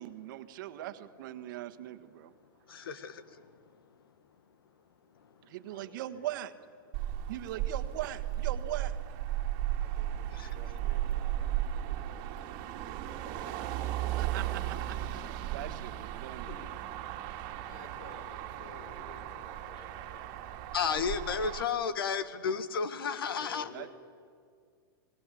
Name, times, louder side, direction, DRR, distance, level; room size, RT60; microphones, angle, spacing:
voice 1, 0.0-2.3 2.7-2.8 5.4-6.5 7.3-9.0 14.1-16.5 23.7-23.9, right 13 dB, 60° right, 10 dB, 1.5 m, -40 dB
voice 2, 5.7-6.3 7.5-7.7 9.8-12.6 13.0-13.8 16.4-17.2 17.7-20.3 23.2-23.9, left 5 dB, 60° left, 8 dB, 4.8 m, -53 dB
Motor vehicle (road), 6.9-21.6, right 12 dB, 45° right, 2.0 m, -35 dB
voice 3, 20.7-23.7, left 6 dB, 85° left, 13 dB, 1.7 m, -31 dB
28.0 x 19.5 x 8.5 m, 2.1 s
hypercardioid pair, 130°, 12 cm